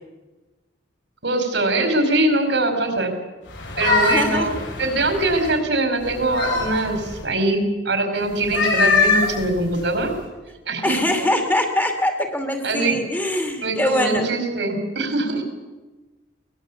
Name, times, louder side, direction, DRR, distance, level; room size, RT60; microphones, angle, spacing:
voice 1, 1.2-3.1 3.8-4.5 4.8-10.1 10.7-11.0 12.6-13.0 13.6-15.4, right 2 dB, 65° right, 6 dB, 4.8 m, -22 dB
sound 1, 3.5-5.6 6.0-7.2 8.4-10.2, left 4 dB, 75° left, 7.0 m, -23 dB
voice 2, 4.0-4.5 10.8-14.3, left 1 dB, 10° left, 4 dB, 2.5 m, -23 dB
22.5 x 20.0 x 8.5 m, 1.2 s
head